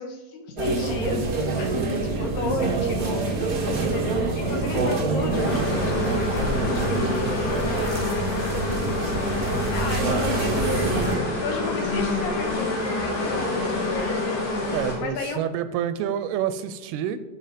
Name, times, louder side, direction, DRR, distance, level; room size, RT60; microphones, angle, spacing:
voice 1, 0.0-7.1 7.4-8.1 8.4-14.2 15.0-15.4, left 2 dB, 70° left, 3 dB, 3.6 m, -34 dB
sound 1, 0.6-11.2, right 3 dB, 60° right, 0.9 m, -26 dB
sound 2, 5.3-14.9, left 2 dB, 55° left, 5.6 m, -27 dB
voice 2, 14.7-17.2, right 10 dB, 80° right, 12 dB, 2.5 m, -28 dB
22.0 x 7.4 x 5.1 m, 1.2 s
omnidirectional pair, 4.8 m